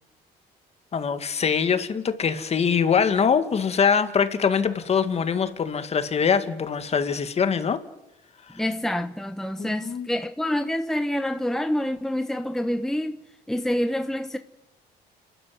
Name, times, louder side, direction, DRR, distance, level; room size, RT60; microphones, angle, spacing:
voice 1, 0.9-7.8 9.6-10.1, left 6 dB, 40° left, 2.1 m, -23 dB
voice 2, 8.5-13.2 13.5-14.4, left 1 dB, ahead, 1.0 m, -27 dB
29.5 x 12.0 x 9.6 m
cardioid pair, 110°, 17 cm